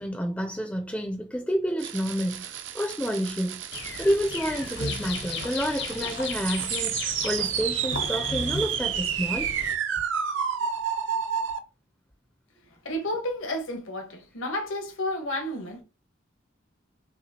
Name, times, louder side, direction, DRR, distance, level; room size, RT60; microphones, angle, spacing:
voice 1, 0.0-3.7 4.0-9.5, equal, 5° left, 0.4 m, -29 dB
sound 1, 1.8-11.6, right 8 dB, 70° right, 0.5 m, -31 dB
sound 2, 3.7-9.7, left 3 dB, 55° left, 0.6 m, -35 dB
voice 2, 12.8-15.8, left 1 dB, 85° left, 1.2 m, -31 dB
5.7 x 2.4 x 2.8 m
head